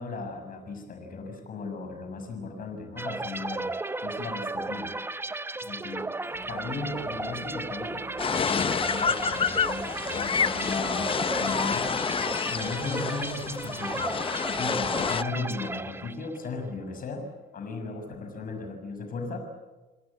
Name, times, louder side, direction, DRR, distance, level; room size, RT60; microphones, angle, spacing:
voice 1, 0.0-3.7 4.0-4.9 5.6-6.1 6.5-8.1 8.4-12.2 12.5-14.1 14.5-19.4, left 3 dB, 50° left, 5 dB, 6.1 m, -36 dB
sound 1, 3.0-16.5, right 2 dB, 10° right, 0.9 m, -35 dB
sound 2, 6.2-12.5, left 1 dB, 15° left, 3.9 m, -47 dB
sound 3, 8.2-15.2, left 6 dB, 30° left, 0.8 m, -28 dB
29.0 x 18.5 x 8.4 m, 1.2 s
cardioid pair, 105°, 19 cm